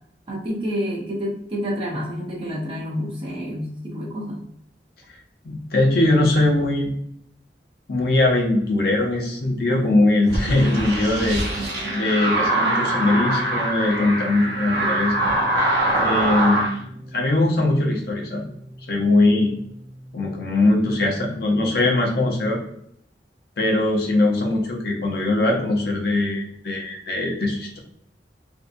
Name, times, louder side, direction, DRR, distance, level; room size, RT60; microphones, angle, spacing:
voice 1, 0.3-4.4 11.6-12.0, equal, 30° right, -3 dB, 0.7 m, -29 dB
voice 2, 5.4-6.9 7.9-11.4 11.9-15.2 16.0-16.9 17.1-18.4 18.9-19.5 20.1-22.6 23.6-27.8, left 2 dB, 60° left, 0 dB, 0.6 m, -21 dB
sound 1, 10.3-16.7, right 1 dB, 65° right, 0.7 m, -23 dB
sound 2, 11.3-21.5, equal, 35° left, 1.0 m, -41 dB
2.6 x 2.2 x 2.5 m, 0.71 s
head